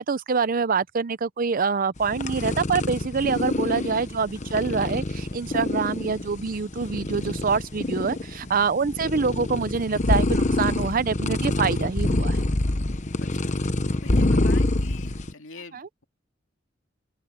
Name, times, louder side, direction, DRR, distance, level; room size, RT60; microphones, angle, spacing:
voice 1, 0.0-12.4 15.7-15.9, right 5 dB, 45° right, 0.6 m, -25 dB
sound 1, 2.0-15.3, left 2 dB, 40° left, 1.1 m, -26 dB
voice 2, 13.2-13.5 14.0-16.1, left 4 dB, 85° left, 2.5 m, -44 dB
open air
head